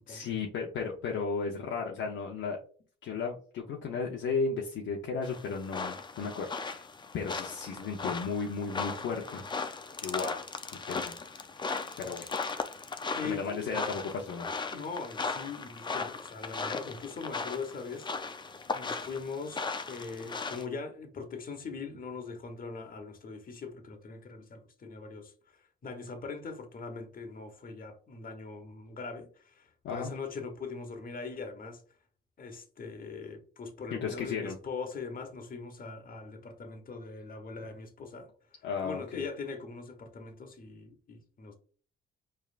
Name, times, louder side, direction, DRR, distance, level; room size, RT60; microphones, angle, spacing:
voice 1, 0.1-2.6 3.0-6.9 7.1-9.4 10.0-10.4 10.9-11.1 12.0-12.3 13.2-14.5 29.8-30.1 33.9-34.6 38.6-39.0, left 5 dB, 65° left, 0.8 m, -34 dB
sound 1, 5.2-20.6, left 4 dB, 20° left, 0.5 m, -37 dB
voice 2, 13.1-13.8 14.7-18.1 18.7-31.8 32.4-38.3 38.8-41.6, left 4 dB, 45° left, 1.2 m, -41 dB
4.5 x 3.3 x 2.5 m
supercardioid pair, 70°, 21 cm